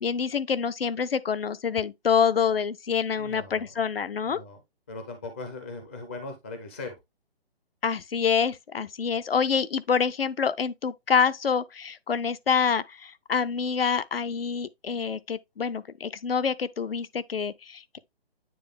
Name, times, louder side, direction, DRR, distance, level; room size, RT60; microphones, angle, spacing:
voice 1, 0.0-4.4 7.8-18.0, left 6 dB, 65° left, 0.6 m, -26 dB
voice 2, 3.2-3.7 4.3-4.6 4.9-7.0, left 3 dB, 15° left, 0.4 m, -39 dB
9.4 x 3.2 x 3.6 m
figure-of-eight pair, 140°, 31 cm